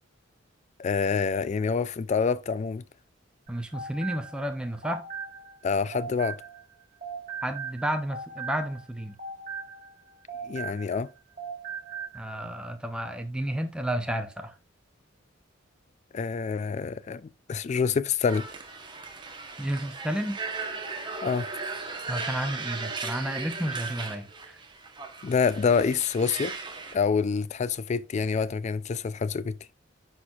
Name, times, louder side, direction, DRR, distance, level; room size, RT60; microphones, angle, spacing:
voice 1, 0.8-2.8 5.6-6.4 10.5-11.1 16.1-18.5 21.2-21.5 25.2-26.5 26.9-29.6, left 5 dB, 35° left, 0.3 m, -27 dB
voice 2, 3.5-5.0 7.4-9.1 12.1-14.5 19.6-20.4 22.1-24.6, right 1 dB, 5° right, 0.6 m, -31 dB
sound 1, 3.5-6.7 7.0-11.1 11.4-12.2, right 5 dB, 45° right, 1.6 m, -39 dB
sound 2, 18.2-26.9, right 4 dB, 25° right, 1.0 m, -37 dB
9.5 x 4.4 x 2.3 m
head